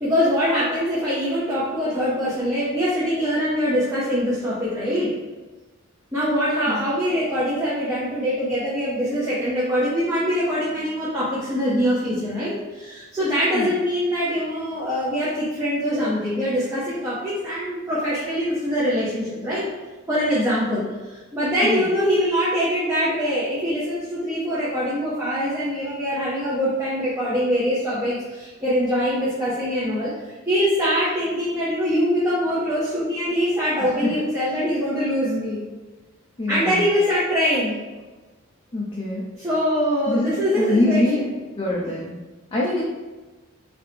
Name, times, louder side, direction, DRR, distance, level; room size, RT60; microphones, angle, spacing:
voice 1, 0.0-5.1 6.1-19.6 20.1-30.1 30.5-35.6 36.5-37.8 39.3-41.4 41.9-42.0, equal, 15° right, -10 dB, 0.7 m, -23 dB
voice 2, 36.4-36.8 38.7-39.2 40.1-40.3 40.6-41.2 41.5-42.1 42.5-42.8, left 1 dB, 25° left, -5 dB, 0.4 m, -23 dB
3.4 x 2.8 x 3.3 m, 1.2 s
head